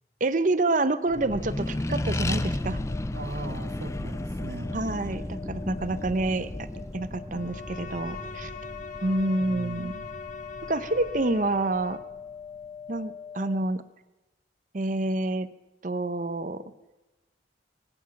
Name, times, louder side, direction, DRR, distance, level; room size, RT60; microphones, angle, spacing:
voice 1, 0.2-2.8 4.0-4.1 4.7-6.7 6.9-8.5 9.0-9.9 10.7-12.0 12.9-13.8 14.7-15.5 15.8-16.6, right 2 dB, 45° right, 13 dB, 0.7 m, -28 dB
Accelerating revving vroom, 1.1-12.0, left 1 dB, 15° left, 0.5 m, -34 dB
sound 1, 1.9-13.6, left 6 dB, 65° left, 3.2 m, -43 dB
voice 2, 3.1-4.8 9.4-10.1, right 2 dB, 70° right, 7 dB, 1.0 m, -40 dB
Bowed string instrument, 7.3-12.1, left 4 dB, 45° left, 1.3 m, -43 dB
23.5 x 9.9 x 5.9 m, 1.1 s
head